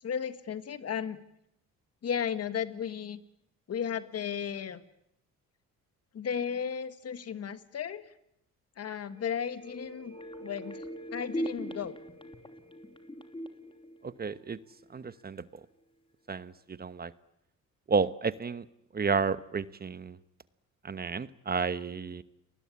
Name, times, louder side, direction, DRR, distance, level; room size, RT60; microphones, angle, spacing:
voice 1, 0.0-1.2 2.0-3.2 3.7-4.8 6.1-8.0 8.8-12.0, left 7 dB, 55° left, 12 dB, 1.8 m, -35 dB
sound 1, 9.2-14.8 15.2-15.3, equal, 15° left, 2.9 m, -41 dB
voice 2, 14.0-14.6 14.9-15.4 16.3-17.1 17.9-18.6 18.9-20.2 20.8-22.2, right 5 dB, 30° right, 15 dB, 1.1 m, -31 dB
30.0 x 20.5 x 8.5 m, 0.79 s
cardioid pair, 90°, 30 cm